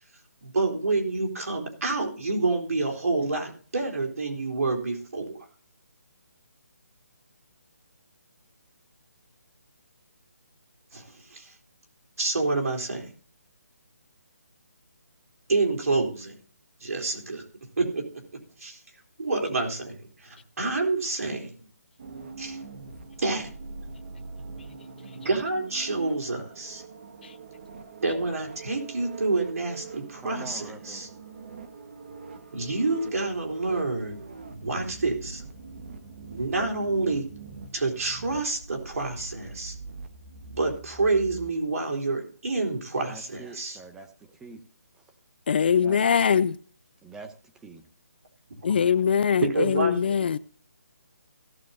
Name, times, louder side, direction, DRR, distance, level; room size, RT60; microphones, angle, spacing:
voice 1, 0.4-5.4 10.9-11.0 11.3-11.5 12.2-13.1 15.5-16.4 16.8-17.4 17.8-18.0 18.6-18.8 19.2-20.0 20.2-21.6 22.4-22.6 23.2-23.5 25.1-26.8 28.0-31.1 32.5-34.2 34.6-35.4 36.3-37.2 37.7-39.7 40.5-43.8 49.4-49.9, right 3 dB, 65° right, 3.9 m, -28 dB
sound 1, 22.0-41.5, right 4 dB, 40° right, 1.5 m, -43 dB
voice 2, 30.2-31.0 43.0-44.6 45.8-46.0 46.3-46.5 47.0-47.9, right 3 dB, 5° right, 0.8 m, -44 dB
voice 3, 45.5-46.5 48.6-50.4, left 7 dB, 40° left, 0.5 m, -22 dB
17.5 x 6.3 x 4.0 m
hypercardioid pair, 165°, 9 cm